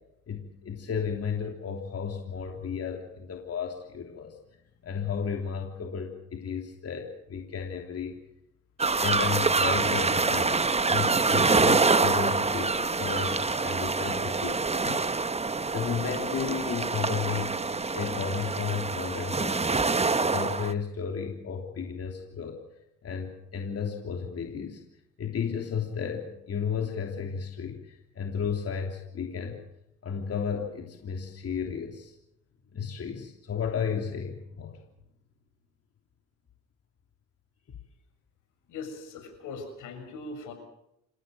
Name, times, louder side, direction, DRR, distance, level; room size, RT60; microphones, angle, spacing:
voice 1, 0.3-4.3 4.8-8.2 9.0-15.1 15.7-17.5 17.9-22.6 23.0-24.8 25.2-29.6 30.0-32.1 32.7-34.8, left 6 dB, 50° left, 2 dB, 3.4 m, -33 dB
sound 1, 8.8-20.7, right 4 dB, 20° right, 1.2 m, -26 dB
voice 2, 38.7-40.5, left 4 dB, 85° left, 6 dB, 7.0 m, -40 dB
28.5 x 16.5 x 7.8 m, 0.82 s
cardioid pair, 90°, 30 cm